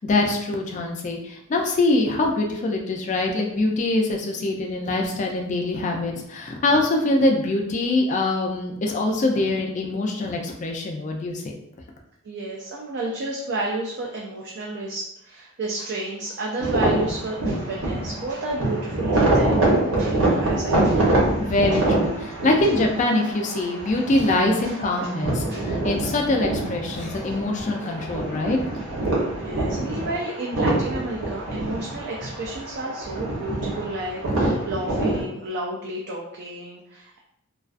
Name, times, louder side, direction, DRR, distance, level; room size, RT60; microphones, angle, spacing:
voice 1, 0.0-11.5 21.4-28.6, left 2 dB, 35° left, 1 dB, 0.3 m, -23 dB
voice 2, 12.2-21.2 21.7-21.9 24.6-24.8 25.5-25.7 29.4-37.2, right 2 dB, 50° right, -3 dB, 0.3 m, -31 dB
sound 1, 16.6-35.2, right 2 dB, 70° right, 0.8 m, -25 dB
2.3 x 2.3 x 2.4 m, 0.78 s
head